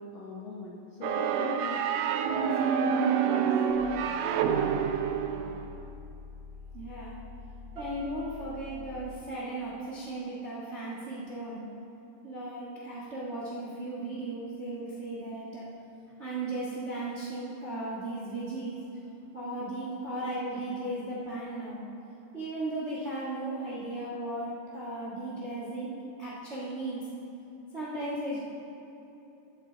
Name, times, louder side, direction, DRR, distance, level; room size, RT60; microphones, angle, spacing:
voice 1, 0.0-2.0 2.3-3.6, left 3 dB, 80° left, -3 dB, 1.1 m, -40 dB
sound 1, 1.0-5.8, right 7 dB, 80° right, 1.8 m, -27 dB
sound 2, 3.7-9.3, left 4 dB, 30° left, 2.1 m, -46 dB
voice 2, 6.7-7.1 7.7-11.6 12.2-15.6 16.2-18.8 19.3-21.8 22.3-25.9 26.2-27.0 27.7-28.4, right 2 dB, 30° right, -7 dB, 1.3 m, -36 dB
sound 3, 7.8-10.7, right 1 dB, 50° right, 3.0 m, -48 dB
12.5 x 8.5 x 3.9 m, 3.0 s
omnidirectional pair, 3.5 m